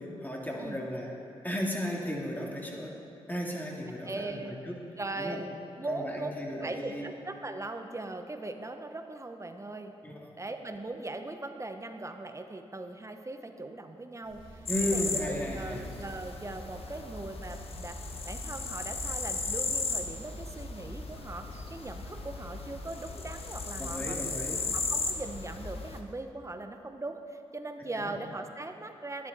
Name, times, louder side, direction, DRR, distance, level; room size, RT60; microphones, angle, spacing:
voice 1, 0.2-1.1 1.4-2.9 3.3-4.8 5.2-5.4 5.9-7.1 10.0-10.2 14.7-15.8 23.8-24.6 27.9-28.1, equal, 15° left, -2 dB, 2.3 m, -34 dB
voice 2, 4.0-4.6 5.0-5.5 5.8-6.3 6.6-9.9 10.3-18.0 18.2-24.2 24.5-29.3, right 2 dB, 25° right, 6 dB, 0.9 m, -40 dB
sound 1, 14.2-26.0, right 1 dB, 60° right, 2.8 m, -47 dB
sound 2, 14.7-26.0, left 4 dB, 60° left, 1.0 m, -36 dB
10.5 x 10.0 x 4.1 m, 2.7 s
supercardioid pair, 45°, 11 cm